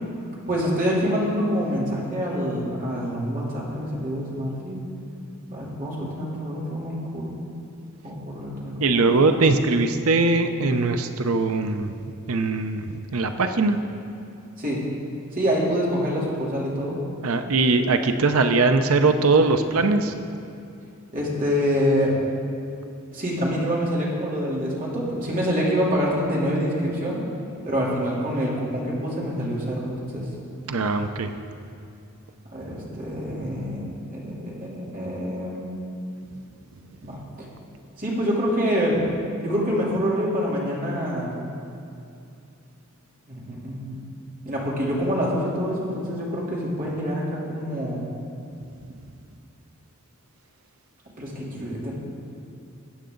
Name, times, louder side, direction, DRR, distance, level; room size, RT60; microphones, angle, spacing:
voice 1, 0.5-4.8 5.5-7.3 8.0-9.1 14.6-14.8 15.3-17.0 21.1-22.2 23.1-27.2 27.6-30.3 32.5-35.7 37.0-37.2 38.0-39.0 39.4-41.4 43.3-44.0 44.4-48.1 51.2-51.9, equal, 40° right, -5 dB, 3.3 m, -26 dB
voice 2, 8.8-13.8 17.2-20.1 30.7-31.3, right 3 dB, 80° right, 7 dB, 0.7 m, -21 dB
21.5 x 8.5 x 3.9 m, 2.6 s
head